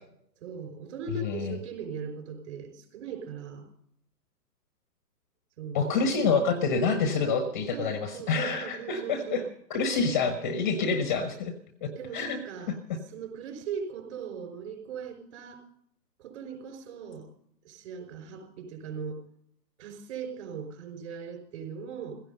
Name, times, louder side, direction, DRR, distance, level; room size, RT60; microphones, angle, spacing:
voice 1, 0.4-3.7 5.6-6.1 7.7-9.5 10.0-10.2 10.8-11.3 11.9-12.8 13.1-15.6 16.2-17.3 17.6-19.2 19.8-22.2, right 6 dB, 40° right, 5 dB, 5.4 m, -39 dB
voice 2, 1.2-1.6 5.7-9.4 9.7-11.5 11.8-12.4 12.9-13.0, left 4 dB, 10° left, 10 dB, 0.6 m, -27 dB
16.0 x 15.5 x 5.4 m, 0.70 s
figure-of-eight pair, 135°, 49 cm